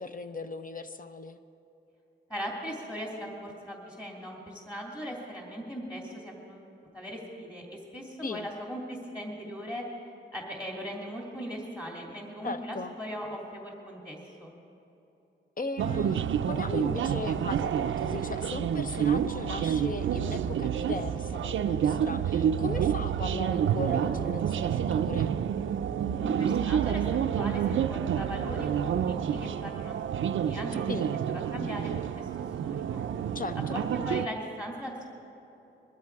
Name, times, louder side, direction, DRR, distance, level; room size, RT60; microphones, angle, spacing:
voice 1, 0.0-1.4 8.2-8.5 12.4-12.9 15.6-25.4 30.9-31.2 33.3-33.8, left 3 dB, 45° left, 9 dB, 0.9 m, -37 dB
voice 2, 2.3-6.7 6.9-9.8 10.3-14.5 26.2-27.0 27.3-27.6 27.9-30.9 31.3-32.3 32.6-33.0 33.5-35.0, equal, 20° left, -2 dB, 2.8 m, -39 dB
sound 1, 15.8-34.3, right 8 dB, 80° right, 0.5 m, -29 dB
21.5 x 13.0 x 4.7 m, 3.0 s
cardioid pair, 80°, 20 cm